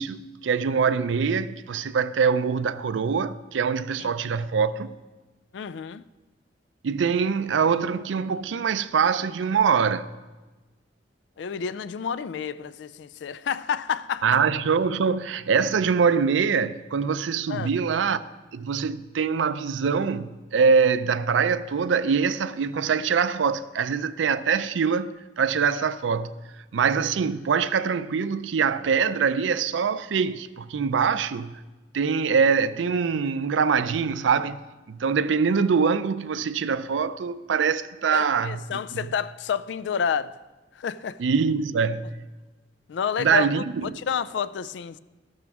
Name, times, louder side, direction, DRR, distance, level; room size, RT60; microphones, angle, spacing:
voice 1, 0.0-5.0 6.8-10.1 14.2-18.2 18.5-26.3 26.7-31.6 31.9-34.6 34.9-39.1 41.2-42.3 43.2-44.0, right 6 dB, 85° right, 0.4 m, -24 dB
voice 2, 5.5-6.1 11.4-14.4 17.5-17.7 38.1-40.3 40.8-41.2 42.9-43.6 44.0-45.0, left 7 dB, 70° left, 0.3 m, -29 dB
12.5 x 12.0 x 3.6 m
head